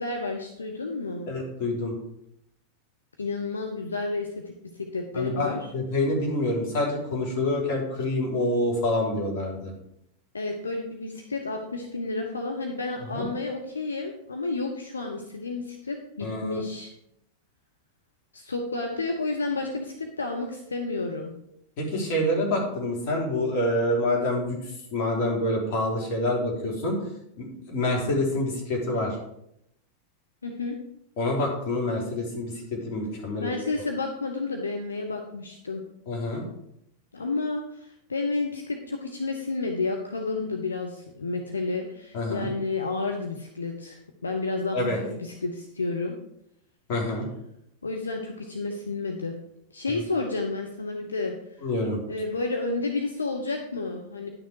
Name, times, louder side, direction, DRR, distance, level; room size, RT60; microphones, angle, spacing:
voice 1, 0.0-1.3 3.2-4.4 4.8-5.7 10.3-16.9 18.3-21.3 30.4-30.8 33.4-35.8 37.1-46.1 47.8-49.4 49.7-51.4 52.1-54.3, left 3 dB, 75° left, 3 dB, 0.9 m, -31 dB
voice 2, 1.3-1.9 5.1-9.7 13.1-13.3 16.2-16.6 21.8-24.6 24.9-27.0 27.4-29.2 31.2-33.5 36.1-36.4 42.1-42.5 44.7-45.0 46.9-47.3 49.9-50.0 51.6-52.0, left 1 dB, 45° left, -1 dB, 3.2 m, -27 dB
10.5 x 6.3 x 4.8 m, 0.78 s
figure-of-eight pair, 90°, 0 cm